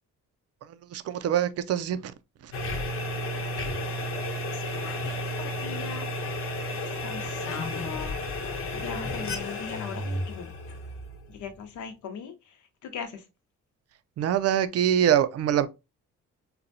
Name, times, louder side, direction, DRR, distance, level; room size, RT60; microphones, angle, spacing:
voice 1, 0.7-2.1 2.4-2.5 14.2-15.7, right 10 dB, 55° right, 0.4 m, -24 dB
sound 1, 2.5-11.7, left 1 dB, 45° left, 0.9 m, -32 dB
voice 2, 4.3-6.1 6.7-8.2 8.7-10.5 11.3-13.2, left 6 dB, 75° left, 0.8 m, -40 dB
4.1 x 2.2 x 2.6 m
cardioid pair, 90°, 30 cm